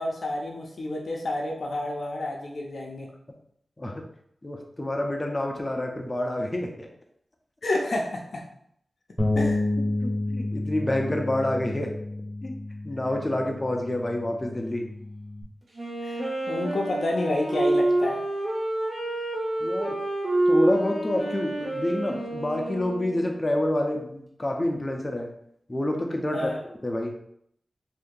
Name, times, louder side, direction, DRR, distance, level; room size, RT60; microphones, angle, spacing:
voice 1, 0.0-3.1 7.6-8.5 9.3-9.6 16.0-18.2 26.3-26.6, left 1 dB, 75° left, -1 dB, 0.5 m, -29 dB
voice 2, 4.4-6.9 10.0-11.9 12.4-12.5 12.8-14.8 19.6-19.9 20.5-25.3 25.7-26.5 26.8-27.1, left 1 dB, 30° left, 2 dB, 0.6 m, -28 dB
Bass guitar, 9.2-15.4, left 2 dB, 5° left, 1.0 m, -30 dB
Wind instrument woodwind instrument, 15.7-23.4, right 1 dB, 80° right, 1.0 m, -27 dB
2.7 x 2.6 x 3.7 m, 0.71 s
wide cardioid pair, 70°, 0 cm